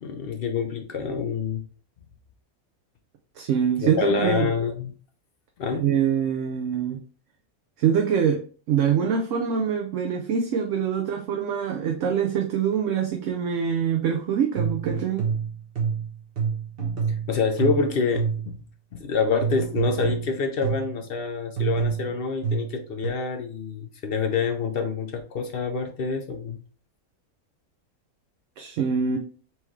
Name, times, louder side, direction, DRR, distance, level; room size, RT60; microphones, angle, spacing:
voice 1, 0.0-1.6 3.8-4.9 5.6-5.8 17.3-18.5 18.9-26.6, left 5 dB, 55° left, 0.6 m, -27 dB
voice 2, 3.4-4.5 5.7-7.0 7.8-8.4 8.7-15.3 28.6-29.2, right 7 dB, 65° right, 0.9 m, -24 dB
sound 1, 14.6-18.6 19.4-21.0 21.6-23.1, right 6 dB, 45° right, 1.2 m, -28 dB
4.4 x 3.5 x 3.1 m
omnidirectional pair, 1.5 m